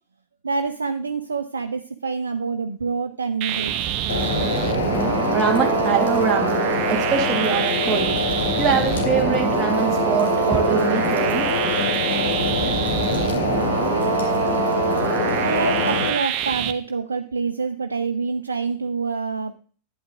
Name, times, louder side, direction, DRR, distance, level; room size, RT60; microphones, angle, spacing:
voice 1, 0.4-3.7 15.4-19.5, right 4 dB, 75° right, 0.8 m, -26 dB
sound 1, 3.4-16.7, right 11 dB, 40° right, 1.1 m, -25 dB
sound 2, 4.1-16.1, left 4 dB, 70° left, 2.9 m, -24 dB
voice 2, 5.3-8.2 8.6-11.7, right 7 dB, 20° right, 1.4 m, -24 dB
12.0 x 9.1 x 3.7 m
figure-of-eight pair, 90°, 0 cm